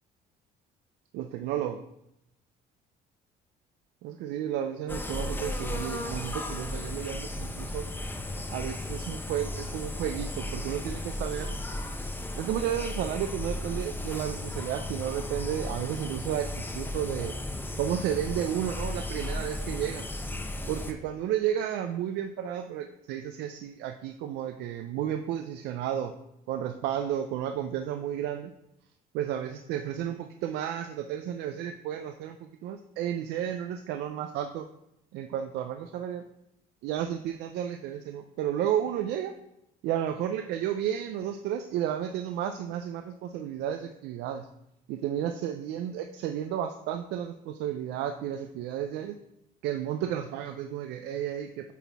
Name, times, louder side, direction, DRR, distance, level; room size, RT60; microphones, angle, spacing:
voice 1, 1.1-1.8 4.0-7.9 8.5-11.5 12.4-17.3 17.8-20.0 20.7-26.1 26.5-28.5 29.1-32.4 32.6-34.7 35.1-36.2 36.8-39.3 39.8-44.5 44.9-49.2 49.6-51.7, right 10 dB, 80° right, 7 dB, 0.4 m, -32 dB
sound 1, 4.9-20.9, left 1 dB, 10° left, 0.7 m, -35 dB
8.3 x 4.1 x 3.4 m, 0.83 s
cardioid pair, 110°, 17 cm